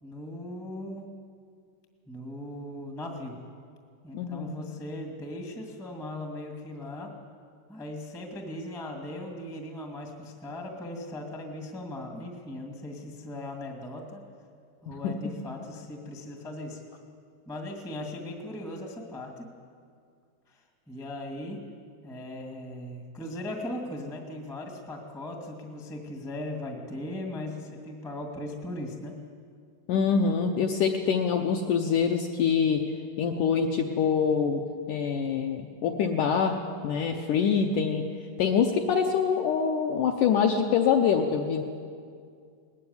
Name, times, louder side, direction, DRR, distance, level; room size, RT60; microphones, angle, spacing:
voice 1, 0.0-1.1 2.1-3.4 4.0-7.1 7.7-14.2 14.8-16.8 17.4-19.5 20.5-20.6 20.9-21.6 22.0-29.1, left 1 dB, 5° left, 2 dB, 0.7 m, -38 dB
voice 2, 4.1-4.6 14.9-15.1 29.9-32.8 33.2-34.6 34.9-36.6 36.8-38.0 38.4-41.6, left 6 dB, 75° left, 3 dB, 1.9 m, -25 dB
19.5 x 14.5 x 9.6 m, 2.2 s
omnidirectional pair, 4.7 m